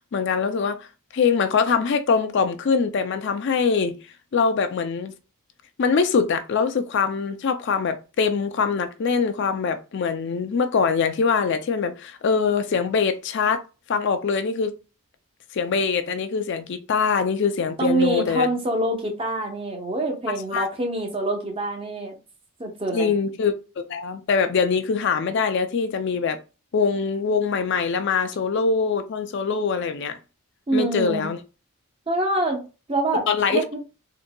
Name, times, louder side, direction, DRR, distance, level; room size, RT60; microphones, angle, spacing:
voice 1, 0.1-0.8 1.1-4.0 4.3-5.1 5.8-13.6 13.9-14.7 15.5-18.5 20.5-20.6 22.9-23.5 23.9-26.4 26.7-30.2 30.7-31.4 33.3-33.6, left 5 dB, 50° left, 0.4 m, -23 dB
voice 2, 17.8-22.2 22.6-23.1 30.7-31.3 32.1-32.6 32.9-33.2 33.5-33.8, right 2 dB, 25° right, 0.8 m, -25 dB
3.8 x 2.6 x 2.2 m
head